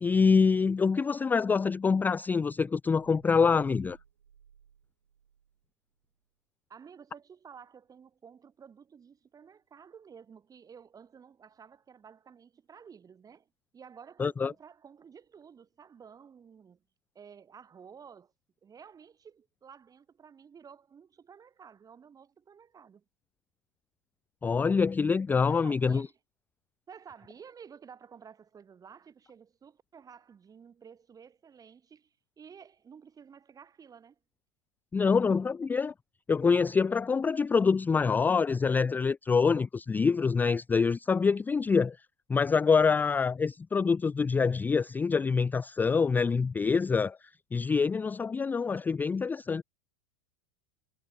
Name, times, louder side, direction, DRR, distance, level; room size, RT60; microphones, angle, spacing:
voice 1, 0.0-4.0 14.2-14.5 24.4-26.1 34.9-35.9 36.3-42.0 42.3-49.6, left 5 dB, 10° left, 0.4 m, -26 dB
sound 1, 2.9-5.6, right 8 dB, 85° right, 2.8 m, -57 dB
voice 2, 6.7-16.8 17.1-18.3 18.6-23.0 25.5-26.1 26.9-34.2, right 7 dB, 25° right, 4.7 m, -52 dB
hypercardioid pair, 90°, 15 cm